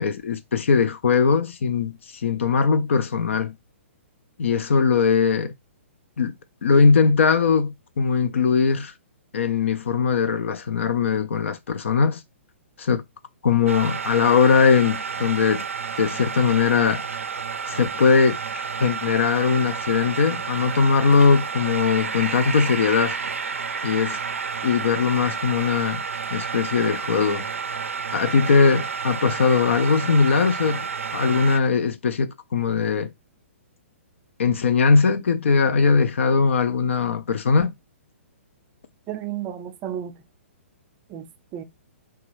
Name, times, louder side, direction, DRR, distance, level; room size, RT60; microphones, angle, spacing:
voice 1, 0.0-3.5 4.4-5.5 6.2-6.3 6.6-8.9 9.3-12.2 12.8-13.0 13.4-15.6 16.0-17.0 17.7-23.2 23.8-24.2 24.6-26.0 26.3-27.5 28.1-33.1 34.4-37.7, left 5 dB, 70° left, 0.5 m, -20 dB
sound 1, 13.7-31.6, right 6 dB, 90° right, 0.4 m, -30 dB
voice 2, 39.1-40.1 41.1-41.6, right 10 dB, 30° right, 0.5 m, -33 dB
3.0 x 2.3 x 3.0 m
hypercardioid pair, 125°, 7 cm